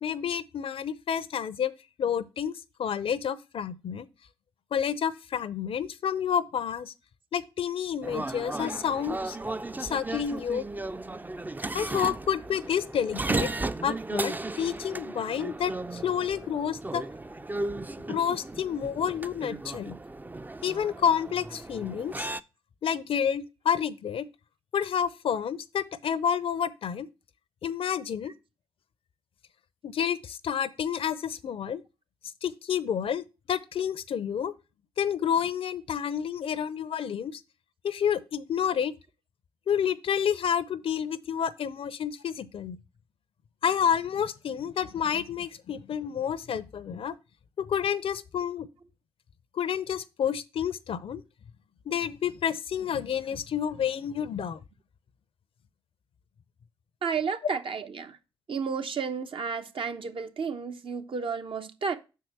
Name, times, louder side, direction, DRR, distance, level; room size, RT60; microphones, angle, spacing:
voice 1, 0.0-1.7 2.0-2.5 2.8-4.1 4.7-6.9 7.3-9.4 9.8-10.7 11.7-13.5 13.8-17.0 18.1-19.9 20.6-22.3 22.8-24.3 24.7-27.1 27.6-28.3 29.8-31.8 32.4-34.5 35.0-37.4 37.8-38.9 39.7-42.8 43.6-47.1 47.6-48.7 49.5-51.2 51.9-54.6, left 8 dB, 60° left, 0.6 m, -29 dB
sound 1, 8.0-22.4, right 2 dB, 15° right, 0.5 m, -35 dB
voice 2, 57.0-58.2 58.5-62.0, right 5 dB, 55° right, 1.0 m, -32 dB
6.0 x 4.7 x 6.0 m
hypercardioid pair, 40°, 11 cm